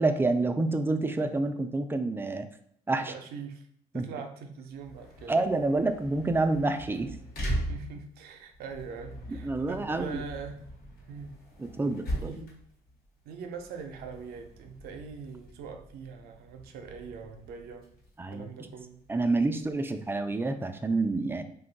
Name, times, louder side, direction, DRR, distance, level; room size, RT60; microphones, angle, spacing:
voice 1, 0.0-2.5 2.9-3.1 3.9-4.1 5.3-7.2 9.3-10.2 11.6-12.4 18.2-18.5 19.1-21.4, right 2 dB, 15° right, 8 dB, 0.3 m, -28 dB
voice 2, 3.0-3.7 3.9-5.4 7.6-10.6 11.1-11.4 12.2-12.6 13.2-17.9 18.3-19.0, right 5 dB, 70° right, 5 dB, 0.5 m, -42 dB
sound 1, 4.7-20.0, right 1 dB, 65° left, 1.2 m, -41 dB
2.7 x 2.3 x 3.8 m, 0.68 s
supercardioid pair, 70°, 16 cm